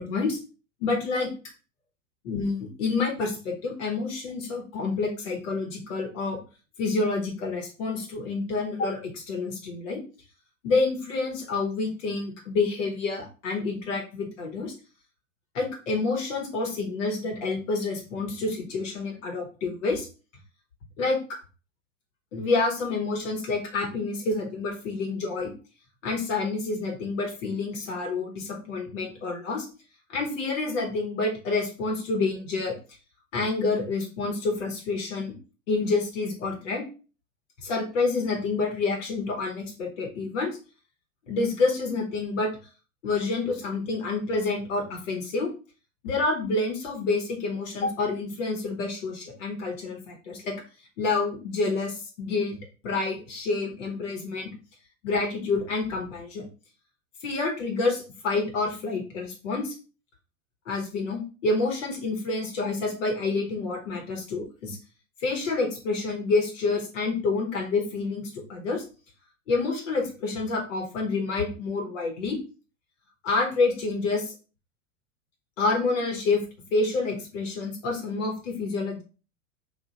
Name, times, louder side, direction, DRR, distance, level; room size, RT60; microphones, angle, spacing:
voice 1, 0.0-0.4 0.8-1.3 2.2-6.4 6.8-10.0 10.6-14.7 15.5-20.1 21.0-21.4 22.3-25.5 26.0-29.7 30.1-32.8 33.3-35.3 35.7-36.8 37.6-40.6 41.3-42.5 43.0-45.5 46.0-50.6 51.0-52.6 52.8-54.5 55.0-56.5 57.2-59.7 60.7-64.8 65.2-68.8 69.5-72.4 73.2-74.2 75.6-76.4 76.7-79.0, left 3 dB, 65° left, 0 dB, 1.2 m, -28 dB
2.6 x 2.4 x 4.0 m, 0.34 s
hypercardioid pair, 95°, 40 cm